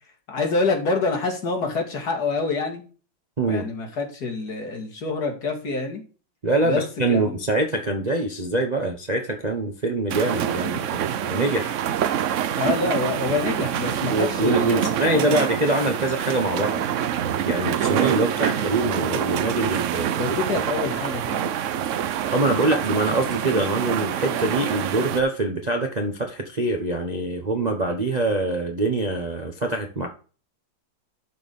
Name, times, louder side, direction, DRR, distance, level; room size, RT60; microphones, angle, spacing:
voice 1, 0.3-2.8 3.4-6.0 6.6-6.8 7.1-7.4 12.6-15.5 20.2-21.6, left 3 dB, 55° left, 3 dB, 2.3 m, -26 dB
voice 2, 6.4-11.7 14.1-16.8 17.5-20.1 22.2-30.1, right 2 dB, 30° right, 3 dB, 0.8 m, -24 dB
sound 1, 10.1-25.2, right 9 dB, 90° right, 0.6 m, -26 dB
11.5 x 4.4 x 5.3 m, 0.38 s
omnidirectional pair, 2.1 m